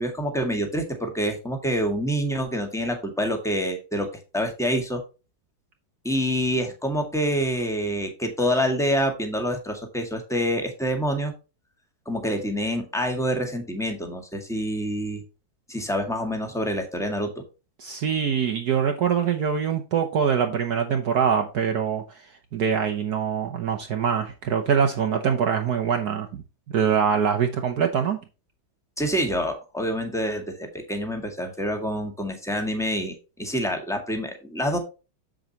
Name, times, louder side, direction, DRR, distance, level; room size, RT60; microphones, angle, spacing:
voice 1, 0.0-4.1 4.3-5.0 6.0-11.3 12.0-15.2 15.7-17.3 29.0-34.8, equal, ahead, 1.7 m, -27 dB
voice 2, 17.8-26.4 26.7-28.2, right 7 dB, 60° right, 1.3 m, -24 dB
7.7 x 7.6 x 2.9 m
omnidirectional pair, 2.1 m